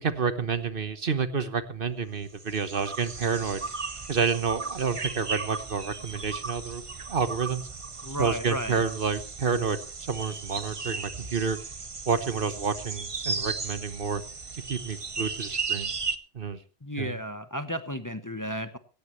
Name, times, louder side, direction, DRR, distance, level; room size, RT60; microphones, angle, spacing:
voice 1, 0.0-3.6 4.1-6.8 7.1-7.7 8.2-9.8 10.1-11.6 12.1-14.2 14.7-15.9 16.3-16.6 17.0-17.2, right 5 dB, 55° right, 12 dB, 1.3 m, -29 dB
sound 1, 2.3-16.2, right 4 dB, 30° right, 0.9 m, -36 dB
voice 2, 8.0-8.8 16.8-18.8, equal, 20° left, 10 dB, 0.9 m, -33 dB
17.0 x 16.5 x 3.1 m, 0.34 s
omnidirectional pair, 1.1 m